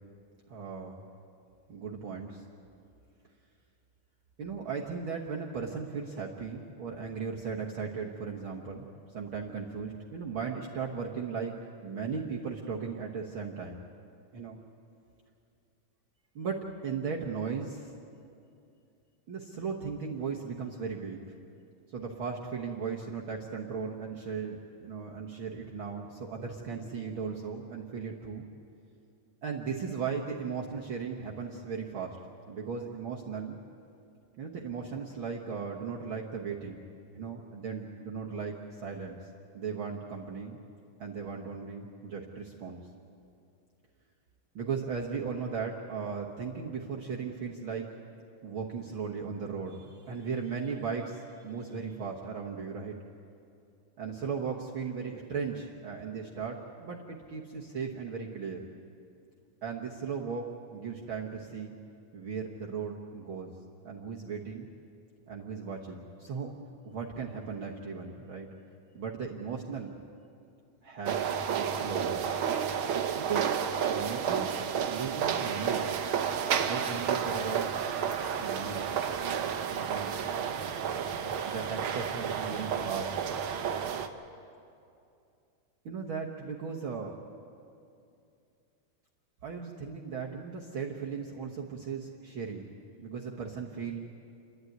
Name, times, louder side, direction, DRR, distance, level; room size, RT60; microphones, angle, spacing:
voice 1, 0.5-1.0 1.7-2.4 4.4-11.6 11.8-13.9 14.3-14.6 16.3-17.9 19.3-21.3 21.9-28.4 29.4-32.2 32.5-33.6 34.4-36.8 37.1-39.2 39.5-40.6 41.0-42.8 44.5-48.0 48.4-53.0 54.0-58.6 59.6-61.7 62.1-63.5 63.8-64.7 65.3-66.5 66.8-68.5 68.9-69.9 70.8-72.2 73.1-73.5 73.9-75.9 76.6-77.7 78.4-78.9 79.7-80.1 81.4-83.1 85.8-87.2 89.4-92.7 93.0-94.0, right 5 dB, 55° right, -2 dB, 1.6 m, -37 dB
sound 1, 71.1-84.1, right 7 dB, 75° right, 1.2 m, -31 dB
29.5 x 12.0 x 9.4 m, 2.5 s
omnidirectional pair, 3.6 m